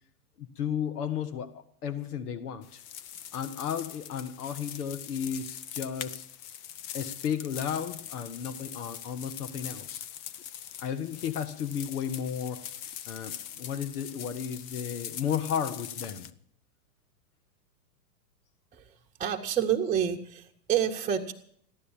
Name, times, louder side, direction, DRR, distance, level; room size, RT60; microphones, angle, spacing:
voice 1, 0.4-1.5 1.8-2.8 3.3-6.2 6.9-10.0 10.8-12.6 13.1-16.3, left 8 dB, 70° left, 11 dB, 1.7 m, -33 dB
sound 1, 2.6-16.3, left 10 dB, 40° left, 0.9 m, -42 dB
voice 2, 19.2-21.3, right 9 dB, 15° right, -1 dB, 1.1 m, -28 dB
15.0 x 11.5 x 7.3 m, 0.64 s
hypercardioid pair, 120°, 46 cm